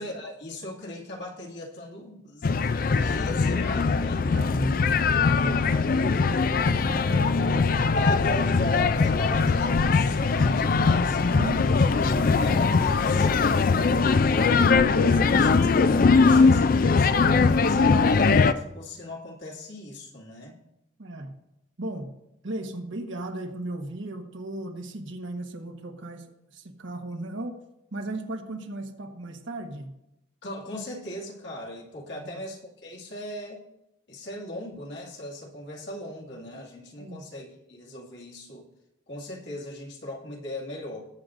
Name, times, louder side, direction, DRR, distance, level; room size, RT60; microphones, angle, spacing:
voice 1, 0.0-4.7 8.0-14.2 15.2-20.6 30.4-33.6 34.1-38.7 39.1-41.0, left 1 dB, 65° left, -3 dB, 2.3 m, -38 dB
sound 1, 2.4-18.5, left 4 dB, 45° left, 0.4 m, -21 dB
voice 2, 4.2-4.9 5.3-8.2 11.3-11.7 15.1-15.5 21.0-21.4 21.8-22.1 22.4-26.2 26.5-27.6 27.9-29.9 32.2-32.3 37.0-37.2, right 1 dB, 75° right, 3 dB, 1.2 m, -36 dB
20.0 x 7.8 x 2.6 m, 0.87 s
head